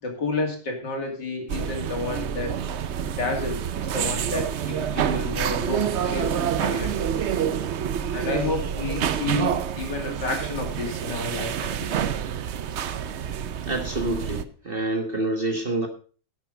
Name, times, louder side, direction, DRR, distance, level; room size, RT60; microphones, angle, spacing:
voice 1, 0.0-2.5 3.1-6.3 6.6-7.1 8.1-11.9, left 3 dB, 65° left, 2 dB, 3.2 m, -30 dB
sound 1, 1.5-14.4, right 8 dB, 85° right, 0.6 m, -28 dB
voice 2, 13.7-15.9, right 1 dB, 30° right, 3 dB, 1.5 m, -27 dB
12.0 x 8.0 x 5.1 m, 0.40 s
omnidirectional pair, 2.0 m